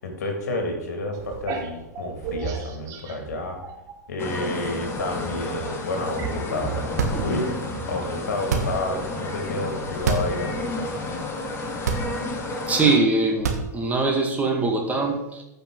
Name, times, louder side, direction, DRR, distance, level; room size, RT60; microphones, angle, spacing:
voice 1, 0.0-3.6 4.1-7.5 7.9-10.9, left 2 dB, 65° left, 3 dB, 2.4 m, -30 dB
sound 1, 1.1-4.0 4.4-9.2, right 5 dB, 35° right, 1.6 m, -35 dB
sound 2, 4.2-13.0, left 2 dB, 25° left, 1.6 m, -31 dB
sound 3, 6.8-7.6 8.4-9.0 9.9-10.4 10.8-10.9 11.8-12.4 13.3-14.0, right 5 dB, 65° right, 1.5 m, -26 dB
voice 2, 12.7-15.4, right 3 dB, 15° right, 2 dB, 1.8 m, -22 dB
15.0 x 5.5 x 3.9 m, 0.92 s
figure-of-eight pair, 95°, 9 cm